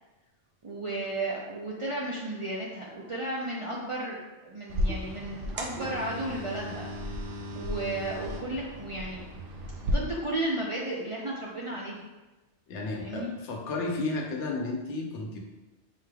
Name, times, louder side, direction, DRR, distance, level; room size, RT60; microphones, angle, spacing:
voice 1, 0.6-4.2 4.4-6.9 7.5-9.2 9.8-12.0 13.0-13.3, right 2 dB, 45° right, -5 dB, 0.4 m, -34 dB
sound 1, 4.7-9.9, equal, 80° right, 0.9 m, -35 dB
voice 2, 12.7-15.4, left 3 dB, 80° left, 1 dB, 1.0 m, -32 dB
5.4 x 3.2 x 2.3 m, 1.1 s
omnidirectional pair, 1.2 m